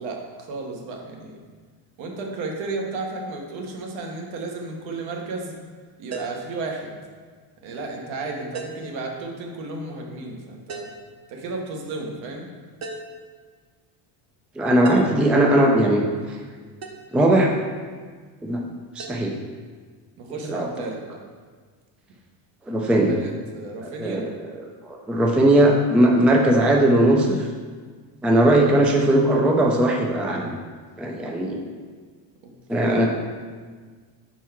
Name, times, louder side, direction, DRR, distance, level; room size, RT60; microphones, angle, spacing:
voice 1, 0.0-1.4 2.0-5.5 6.0-7.0 7.6-10.9 11.3-12.5 15.7-15.9 20.2-21.2 23.1-24.3 32.8-33.1, right 3 dB, 70° right, 1 dB, 1.3 m, -33 dB
sound 1, 6.1-6.5 8.5-9.0 10.7-11.1 12.8-13.2 14.8-15.3 16.8-17.1 19.0-19.2, right 4 dB, 35° right, 0.8 m, -35 dB
voice 2, 14.6-16.0 16.3-16.4 17.1-17.5 18.4-18.6 18.9-19.3 20.4-20.7 22.7-23.2 23.8-27.5 28.2-30.5 31.0-31.7 32.7-33.1, right 1 dB, 5° right, 0 dB, 0.4 m, -19 dB
4.6 x 4.5 x 5.8 m, 1.5 s
cardioid pair, 130°, 48 cm